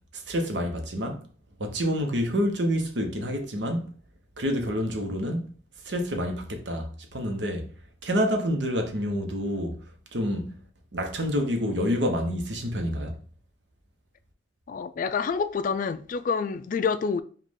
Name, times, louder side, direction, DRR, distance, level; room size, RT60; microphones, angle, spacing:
voice 1, 0.1-1.3 1.6-3.9 4.4-5.5 5.8-7.7 8.0-9.9 10.1-10.6 10.9-13.2, equal, 80° right, 0.9 m, -28 dB
voice 2, 14.7-17.2, left 5 dB, 50° left, 0.3 m, -27 dB
5.2 x 2.4 x 3.6 m
head